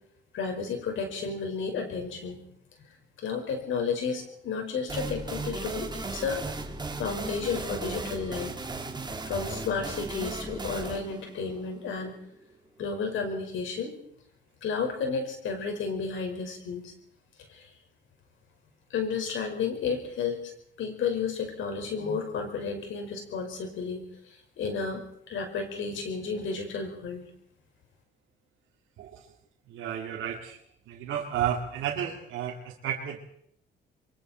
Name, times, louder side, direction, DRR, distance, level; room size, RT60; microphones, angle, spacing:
voice 1, 0.3-2.4 3.2-8.5 9.2-12.2 12.8-13.9 14.6-16.9 17.5-17.7 18.9-20.5 20.8-24.0 24.6-27.2, left 5 dB, 75° left, 4 dB, 5.3 m, -32 dB
sound 1, 4.9-12.4, right 3 dB, 20° right, 2.3 m, -36 dB
voice 2, 29.7-30.6 30.9-33.2, right 9 dB, 85° right, -1 dB, 2.2 m, -32 dB
28.5 x 23.0 x 4.5 m, 0.68 s
cardioid pair, 90°, 20 cm